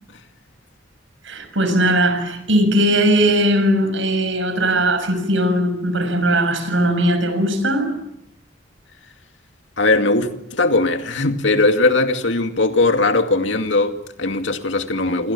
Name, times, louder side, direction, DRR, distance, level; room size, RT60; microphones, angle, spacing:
voice 1, 1.2-7.9, right 1 dB, 90° right, 6.6 m, -19 dB
voice 2, 9.8-15.3, left 2 dB, 80° left, 2.3 m, -19 dB
28.0 x 27.0 x 7.2 m
head